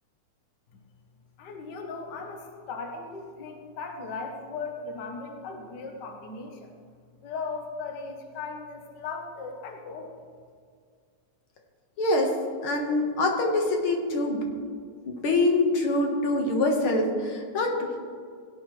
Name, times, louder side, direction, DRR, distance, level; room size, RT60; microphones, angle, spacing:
voice 1, 1.4-6.7 7.2-10.1, left 4 dB, 75° left, 3 dB, 0.9 m, -37 dB
voice 2, 12.0-14.5 15.1-18.0, left 2 dB, 55° left, 2 dB, 1.9 m, -25 dB
17.0 x 9.7 x 3.2 m, 2.1 s
omnidirectional pair, 3.4 m